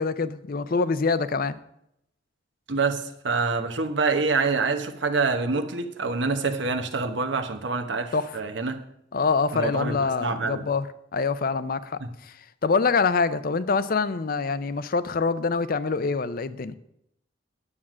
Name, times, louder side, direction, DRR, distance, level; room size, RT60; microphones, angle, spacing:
voice 1, 0.0-1.6 8.1-8.4 9.1-10.9 11.1-12.4 12.6-16.7, left 4 dB, 50° left, 15 dB, 0.5 m, -25 dB
voice 2, 2.7-8.8 9.5-10.6 12.0-12.1, right 4 dB, 70° right, 6 dB, 1.0 m, -26 dB
9.7 x 7.4 x 6.2 m, 0.78 s
head